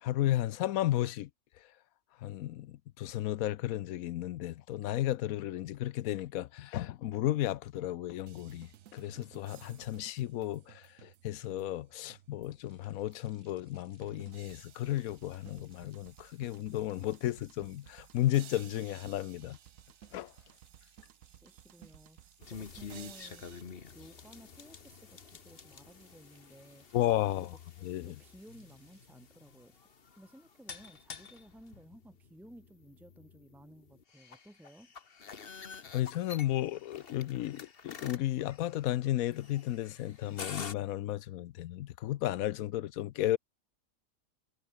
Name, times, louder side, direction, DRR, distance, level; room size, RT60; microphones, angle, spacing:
voice 1, 0.0-1.3 1.6-1.7 2.2-19.6 20.1-20.3 26.9-27.6 27.8-28.2 35.9-43.4, left 14 dB, 80° left, 1.1 m, -33 dB
sound 1, 8.3-12.7 13.1-13.2 14.0-23.6, right 11 dB, 70° right, 1.1 m, -56 dB
sound 2, 12.6-29.1, right 2 dB, 45° right, 4.6 m, -70 dB
voice 2, 21.4-23.5 23.9-26.9 27.3-27.4 28.0-29.9 30.2-34.9, right 1 dB, ahead, 1.0 m, -56 dB
sound 3, 22.4-40.7, left 5 dB, 45° left, 1.5 m, -49 dB
omnidirectional pair, 1.5 m